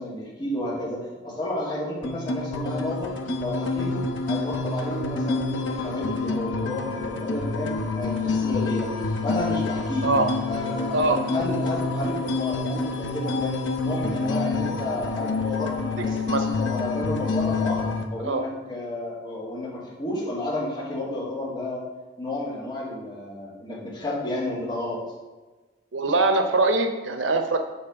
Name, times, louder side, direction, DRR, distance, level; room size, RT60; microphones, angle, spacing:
voice 1, 0.0-8.9 9.2-10.1 10.4-13.5 13.8-17.8 18.1-21.8 22.2-25.0, left 1 dB, 25° left, -10 dB, 2.6 m, -31 dB
sound 1, 2.0-18.0, left 3 dB, 75° left, 0.8 m, -28 dB
voice 2, 25.9-27.6, right 2 dB, 85° right, 6 dB, 0.8 m, -22 dB
7.2 x 4.1 x 6.4 m, 1.3 s
head